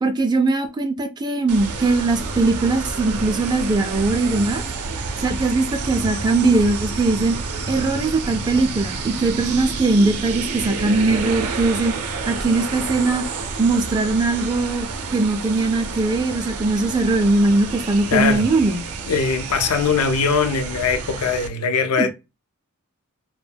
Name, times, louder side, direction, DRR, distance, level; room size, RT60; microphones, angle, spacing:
voice 1, 0.0-4.6 5.2-7.4 7.7-12.0 12.3-13.3 13.6-18.8 22.0-22.1, right 3 dB, 20° right, 0.3 m, -20 dB
sound 1, 1.5-21.5, right 4 dB, 80° right, 0.5 m, -29 dB
voice 2, 18.1-18.5 19.1-22.1, left 5 dB, 90° left, 0.5 m, -21 dB
2.1 x 2.1 x 3.3 m
head